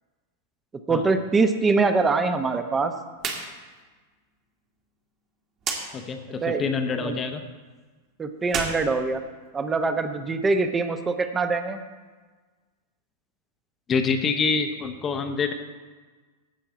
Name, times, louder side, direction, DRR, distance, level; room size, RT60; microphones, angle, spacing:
voice 1, 0.9-2.9 6.4-6.6 7.0-7.2 8.2-9.2 9.5-11.8, right 4 dB, 15° right, 8 dB, 0.9 m, -23 dB
sound 1, 3.1-3.5 3.8-3.9 5.6-5.8 8.4-9.7, right 5 dB, 35° right, 1.7 m, -31 dB
voice 2, 5.9-7.4 13.9-15.5, left 5 dB, 25° left, 7 dB, 0.9 m, -26 dB
16.0 x 5.8 x 4.2 m, 1.4 s
figure-of-eight pair, 90°, 0 cm